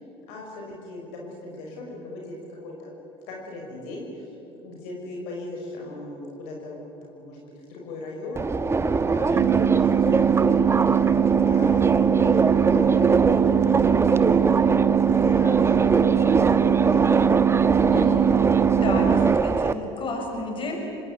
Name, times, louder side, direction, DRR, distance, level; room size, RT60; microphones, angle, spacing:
voice 1, 0.3-2.9 3.3-4.3 4.6-8.8 9.0-11.1 11.4-14.6 15.0-17.5, left 2 dB, 75° left, -1 dB, 5.9 m, -38 dB
Subway metro underground, 8.4-19.7, right 4 dB, 20° right, 1.2 m, -23 dB
sound 1, 9.4-19.4, right 9 dB, 45° right, 0.8 m, -21 dB
voice 2, 17.9-18.3 18.7-20.8, left 2 dB, 40° left, 2 dB, 6.9 m, -31 dB
25.5 x 20.0 x 9.7 m, 3.0 s
hypercardioid pair, 80°, 13 cm